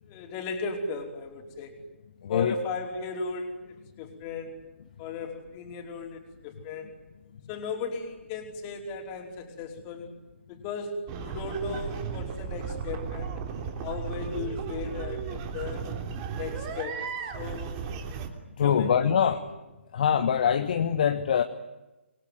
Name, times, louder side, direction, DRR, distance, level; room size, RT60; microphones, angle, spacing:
voice 1, 0.0-1.7 2.3-4.6 5.0-7.0 7.5-10.1 10.5-13.4 13.8-15.9 16.4-17.0 17.3-17.9 18.6-19.4, left 4 dB, 20° left, 3 dB, 4.6 m, -36 dB
voice 2, 2.2-2.5 18.6-19.4 19.9-21.4, left 8 dB, 40° left, 8 dB, 1.4 m, -23 dB
sound 1, 11.1-18.3, right 6 dB, 25° right, 3.2 m, -35 dB
27.0 x 22.0 x 9.5 m, 1.1 s
figure-of-eight pair, 135°, 7 cm